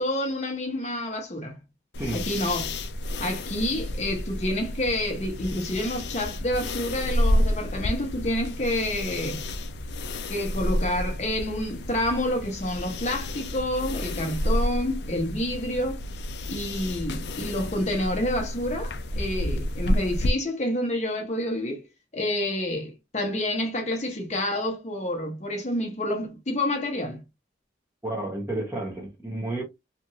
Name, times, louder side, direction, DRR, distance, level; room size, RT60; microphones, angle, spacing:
voice 1, 0.0-1.6 2.1-2.7 3.2-9.4 10.3-16.0 16.5-21.8 22.1-27.2, left 1 dB, 40° left, 0.9 m, -28 dB
sound 1, 1.9-20.3, left 1 dB, 75° left, 0.4 m, -30 dB
voice 2, 28.0-29.6, right 2 dB, 15° right, 0.9 m, -31 dB
2.9 x 2.5 x 2.6 m
head